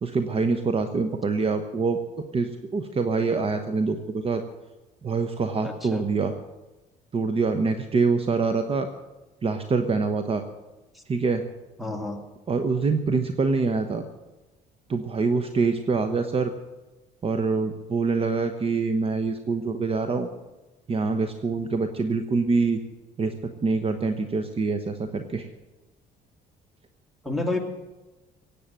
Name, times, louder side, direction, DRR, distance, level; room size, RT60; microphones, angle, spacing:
voice 1, 0.0-2.0 2.3-4.4 5.0-6.3 7.1-8.9 9.4-10.4 11.1-11.4 12.5-14.0 14.9-16.5 17.2-20.3 20.9-22.8 23.2-25.5, right 4 dB, 35° right, 8 dB, 1.1 m, -25 dB
voice 2, 5.6-6.0 10.9-11.0 11.8-12.2 27.2-27.6, left 2 dB, ahead, 4 dB, 2.6 m, -29 dB
17.5 x 8.6 x 7.5 m, 1.1 s
cardioid pair, 110°, 17 cm